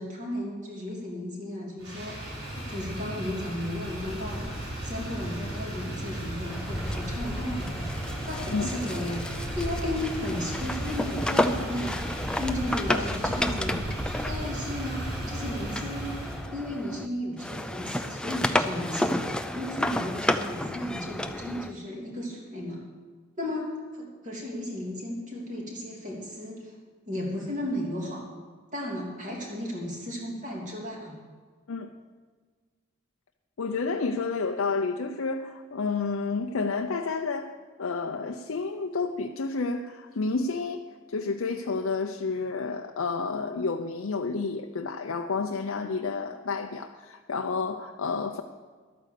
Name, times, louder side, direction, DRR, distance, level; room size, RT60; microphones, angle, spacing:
voice 1, 0.0-4.5 4.8-7.9 8.2-9.3 9.5-11.9 12.3-13.8 14.2-16.2 16.5-19.2 19.5-22.8 23.4-26.7 27.1-28.3 28.7-31.2, left 1 dB, 35° right, -2 dB, 2.9 m, -34 dB
Motor vehicle (road), 1.8-16.4, right 1 dB, 80° right, 4.7 m, -35 dB
sound 1, 6.5-17.1 17.4-21.7, left 1 dB, 5° left, 0.4 m, -32 dB
voice 2, 33.6-37.5 37.8-40.8 41.1-48.4, left 4 dB, 65° left, 4 dB, 0.5 m, -30 dB
12.0 x 9.1 x 6.6 m, 1.5 s
head